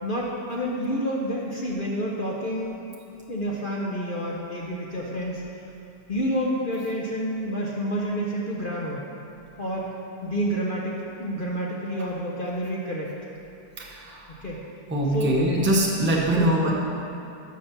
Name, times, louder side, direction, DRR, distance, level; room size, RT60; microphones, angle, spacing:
voice 1, 0.0-2.8 3.3-5.4 6.1-9.0 9.6-9.9 10.2-13.1 14.4-14.6 15.1-15.4 16.3-16.7, equal, 45° left, -4 dB, 0.7 m, -29 dB
voice 2, 13.8-14.2 14.9-16.7, right 1 dB, 10° right, -3 dB, 0.7 m, -23 dB
6.7 x 6.2 x 5.8 m, 2.7 s
omnidirectional pair, 1.8 m